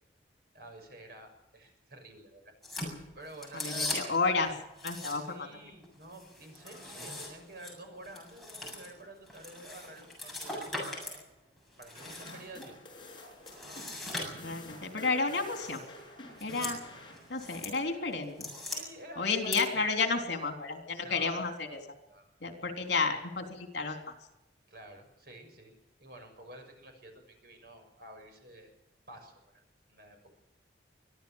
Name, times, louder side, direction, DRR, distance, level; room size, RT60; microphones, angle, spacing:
voice 1, 0.5-2.5 3.1-4.2 5.0-11.2 11.8-12.8 18.6-19.6 21.0-21.4 22.1-22.3 24.7-25.7 26.0-28.7 29.1-29.6 29.9-30.3, right 1 dB, 55° right, 4 dB, 6.4 m, -50 dB
sound 1, 2.6-4.3 4.8-5.5 5.8-11.2 11.6-12.7 13.4-14.7 15.6-15.9 16.3-16.8 17.1-17.8 18.1-18.8 19.3-19.6, left 2 dB, ahead, 7.6 m, -40 dB
voice 2, 3.5-4.5 4.8-5.5 14.3-15.8 16.4-16.8 17.3-18.5 19.2-21.8 22.4-24.0, left 4 dB, 65° left, 5 dB, 3.6 m, -31 dB
sound 2, 11.9-18.5, left 1 dB, 25° left, 6.8 m, -50 dB
24.0 x 15.0 x 7.3 m, 0.91 s
head